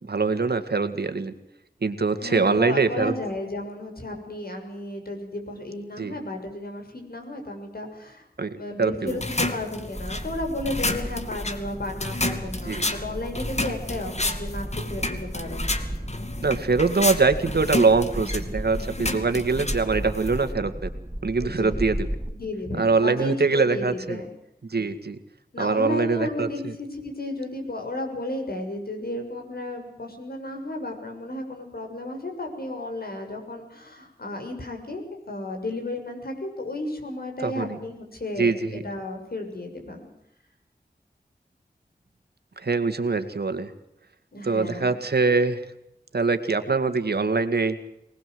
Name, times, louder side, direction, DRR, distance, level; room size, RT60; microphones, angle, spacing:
voice 1, 0.0-1.3 1.8-3.1 6.0-6.1 8.4-9.2 12.7-12.8 16.4-20.7 21.2-22.1 22.8-24.2 24.7-25.2 25.6-26.5 37.4-37.8 38.4-38.8 42.6-43.7 44.4-45.6 46.1-47.8, right 4 dB, 75° right, 8 dB, 2.1 m, -23 dB
voice 2, 2.2-8.3 8.5-15.8 21.4-21.8 22.3-24.3 25.5-40.1 44.3-44.9, left 1 dB, 65° left, 4 dB, 6.7 m, -33 dB
sound 1, 9.1-20.5, left 2 dB, 40° left, 2.4 m, -31 dB
sound 2, 10.0-22.3, equal, 15° right, 1.8 m, -35 dB
24.5 x 19.5 x 7.9 m, 0.80 s
wide cardioid pair, 60°, 17 cm